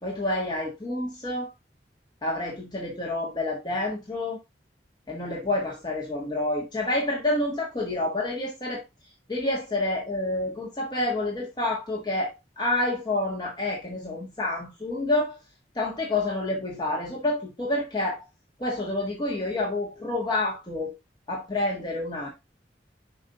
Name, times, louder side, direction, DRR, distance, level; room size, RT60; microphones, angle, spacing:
voice 1, 0.0-1.5 2.2-4.4 5.1-8.8 9.3-15.4 15.7-18.2 18.6-20.9 21.3-22.3, left 2 dB, 25° left, 1.4 m, -28 dB
5.4 x 5.3 x 3.8 m
head